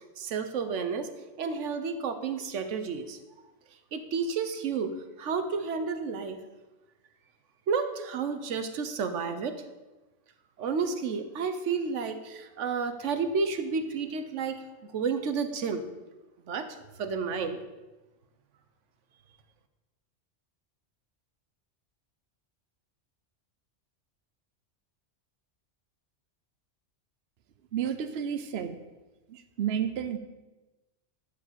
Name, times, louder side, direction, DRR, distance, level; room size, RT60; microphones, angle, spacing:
voice 1, 0.2-1.1 1.4-3.2 3.9-6.4 7.7-9.6 10.6-14.6 14.9-15.8 16.5-16.7 17.0-17.6, right 5 dB, 90° right, 9 dB, 1.2 m, -31 dB
voice 2, 27.7-28.8 29.3-30.2, right 8 dB, 65° right, 9 dB, 0.9 m, -31 dB
12.0 x 4.9 x 6.8 m, 1.1 s
omnidirectional pair, 1.2 m